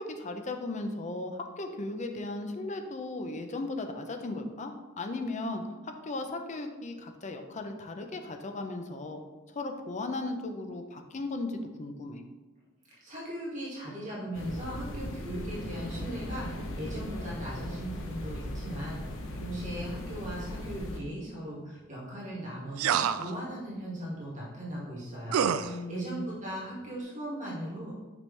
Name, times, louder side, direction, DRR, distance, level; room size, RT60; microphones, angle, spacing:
voice 1, 0.0-9.2 9.5-12.2 25.6-26.2, left 2 dB, 35° left, 6 dB, 0.6 m, -36 dB
voice 2, 13.0-27.9, right 1 dB, 35° right, -7 dB, 2.1 m, -38 dB
sound 1, 14.3-21.0, left 1 dB, 65° left, 0.9 m, -38 dB
sound 2, 22.8-23.3 25.3-25.7, right 8 dB, 75° right, 0.3 m, -27 dB
6.0 x 6.0 x 3.3 m, 1.3 s
head